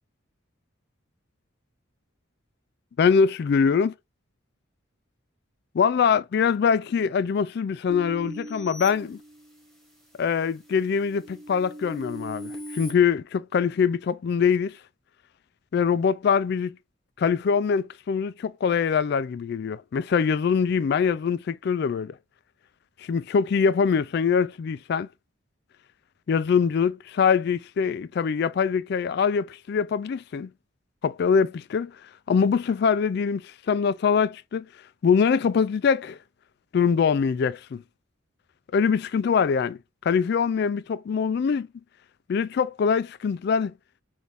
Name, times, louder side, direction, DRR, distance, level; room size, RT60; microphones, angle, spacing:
voice 1, 3.0-3.9 5.7-9.2 10.2-14.8 15.7-16.8 17.2-22.1 23.0-25.1 26.3-30.5 31.0-31.9 32.3-34.7 35.0-36.2 36.7-37.8 38.7-39.8 40.0-41.7 42.3-43.7, left 6 dB, 50° left, 0.3 m, -23 dB
sound 1, 7.9-9.9 10.4-12.9, equal, ahead, 1.1 m, -40 dB
6.0 x 2.5 x 3.5 m
head